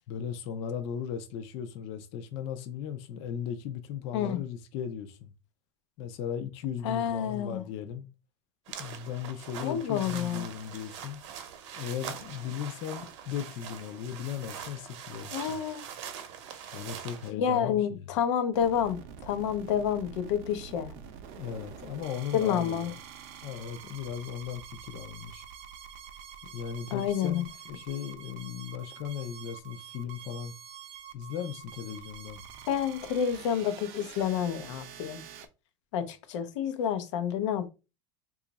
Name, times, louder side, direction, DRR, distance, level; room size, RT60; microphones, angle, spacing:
voice 1, 0.1-5.3 6.0-8.1 8.7-11.2 11.7-15.6 16.7-18.0 21.4-23.0 23.4-25.4 26.5-30.5 31.1-32.4, left 8 dB, 40° left, 0.4 m, -37 dB
voice 2, 6.8-7.6 9.6-10.5 15.3-15.8 17.3-20.9 22.3-22.9 26.9-27.4 32.7-35.2 35.9-37.7, left 8 dB, 90° left, 0.7 m, -29 dB
sound 1, 8.7-17.3, right 8 dB, 80° right, 0.7 m, -43 dB
sound 2, 18.5-35.5, right 8 dB, 45° right, 0.5 m, -47 dB
3.0 x 2.4 x 3.9 m
supercardioid pair, 170°, 15 cm